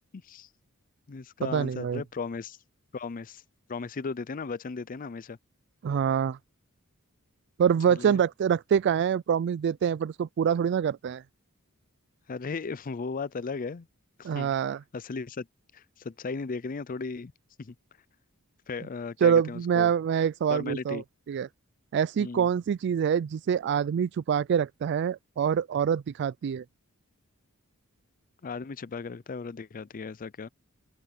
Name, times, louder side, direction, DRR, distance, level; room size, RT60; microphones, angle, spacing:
voice 1, 0.1-0.5 1.1-2.6 2.9-3.4 3.7-5.4 8.0-8.2 12.3-13.9 14.2-14.5 14.9-15.5 15.7-17.3 17.6-17.7 18.7-19.9 20.5-21.0 22.2-22.5 28.4-30.5, left 4 dB, 40° left, 0.5 m, -36 dB
voice 2, 1.4-2.0 5.8-6.4 7.6-11.2 14.2-14.8 19.2-21.0 21.3-21.5 21.9-26.6, right 8 dB, 55° right, 0.3 m, -25 dB
open air
head